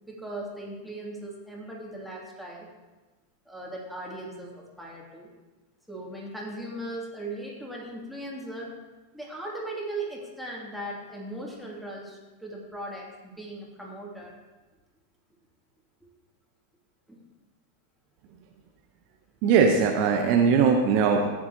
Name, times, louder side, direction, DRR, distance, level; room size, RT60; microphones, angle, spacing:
voice 1, 0.0-2.7 3.4-5.3 5.9-8.7 9.1-14.3 17.1-17.2, right 1 dB, ahead, -4 dB, 2.7 m, -38 dB
voice 2, 19.4-21.3, right 6 dB, 45° right, 3 dB, 0.9 m, -20 dB
15.0 x 9.8 x 2.9 m, 1.2 s
figure-of-eight pair, 90°, 0 cm